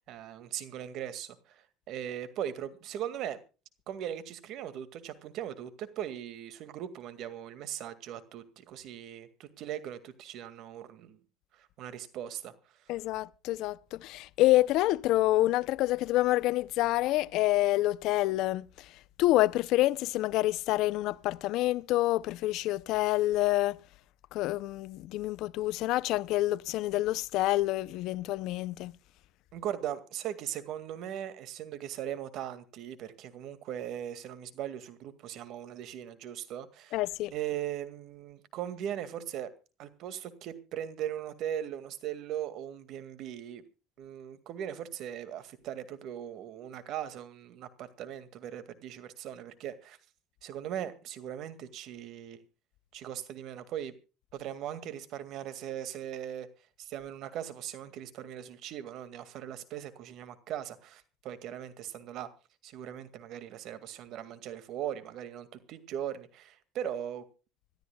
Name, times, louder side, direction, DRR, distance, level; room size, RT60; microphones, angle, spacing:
voice 1, 0.1-3.4 3.9-11.2 11.5-12.5 29.5-37.0 37.3-39.5 39.8-43.6 44.0-50.0 50.4-52.4 52.9-53.9 54.3-56.5 56.8-62.3 62.6-67.3, right 10 dB, 60° right, 2.0 m, -39 dB
voice 2, 12.9-23.8 24.3-28.9 36.9-37.3, left 16 dB, 70° left, 0.6 m, -27 dB
26.0 x 13.0 x 2.3 m
cardioid pair, 110°, 0 cm